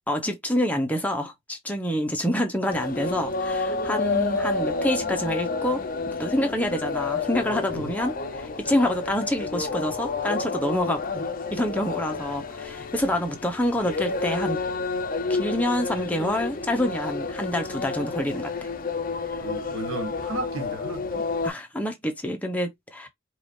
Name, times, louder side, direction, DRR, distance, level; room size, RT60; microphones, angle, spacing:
voice 1, 0.1-14.6 15.3-18.7 21.4-23.1, left 1 dB, 5° left, 0.9 m, -27 dB
sound 1, 2.7-21.5, left 4 dB, 40° left, 0.6 m, -30 dB
voice 2, 19.4-21.3, right 3 dB, 90° right, 1.7 m, -35 dB
4.9 x 2.6 x 3.2 m
head